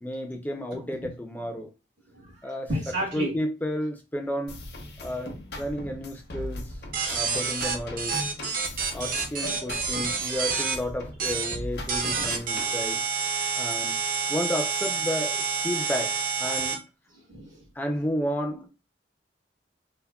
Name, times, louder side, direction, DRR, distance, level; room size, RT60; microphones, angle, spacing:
voice 1, 0.0-1.7 2.4-2.7 3.1-4.6 5.0-6.7 7.1-8.3 8.9-13.0 13.6-13.9 14.3-16.8 17.8-18.7, equal, 10° left, 0.4 m, -32 dB
voice 2, 2.1-3.4 9.5-9.9 16.6-16.7 17.1-17.6 18.5-18.6, equal, 85° right, 1.6 m, -33 dB
sound 1, 4.5-12.8, left 1 dB, 60° left, 0.7 m, -39 dB
sound 2, 6.9-10.8 11.2-11.6 11.9-16.8, right 5 dB, 50° right, 0.5 m, -28 dB
3.4 x 2.1 x 2.2 m
head